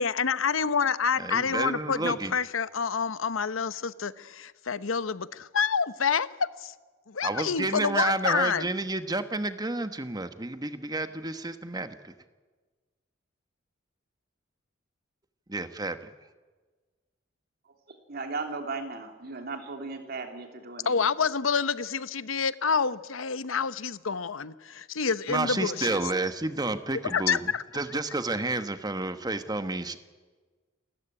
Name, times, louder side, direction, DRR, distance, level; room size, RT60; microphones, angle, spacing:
voice 1, 0.0-6.7 7.1-8.7 20.8-26.0 27.1-27.6, left 6 dB, 85° left, 15 dB, 0.9 m, -28 dB
voice 2, 1.2-2.3 7.2-12.1 15.5-16.1 25.3-27.5 27.7-30.0, right 2 dB, 20° right, 10 dB, 1.2 m, -30 dB
voice 3, 17.6-21.1, right 3 dB, 50° right, 5 dB, 3.1 m, -37 dB
28.0 x 14.0 x 9.9 m, 1.3 s
head